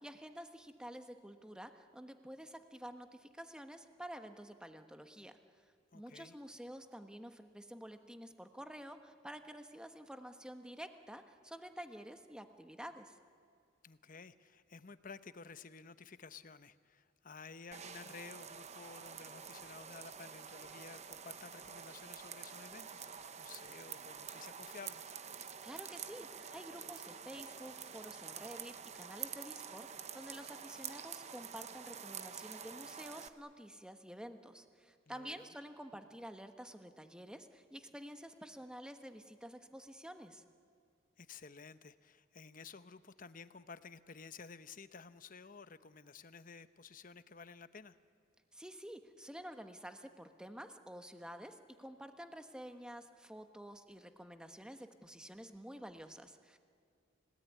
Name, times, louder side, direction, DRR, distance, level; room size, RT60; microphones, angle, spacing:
voice 1, 0.0-5.4 5.9-13.2 25.6-40.4 48.5-56.6, equal, 5° right, 7 dB, 1.2 m, -50 dB
voice 2, 5.9-6.4 13.8-25.1 35.1-35.5 41.2-48.0, left 5 dB, 45° left, 12 dB, 0.9 m, -53 dB
sound 1, 17.7-33.3, right 7 dB, 35° right, 1.0 m, -48 dB
30.0 x 17.5 x 9.3 m, 2.4 s
head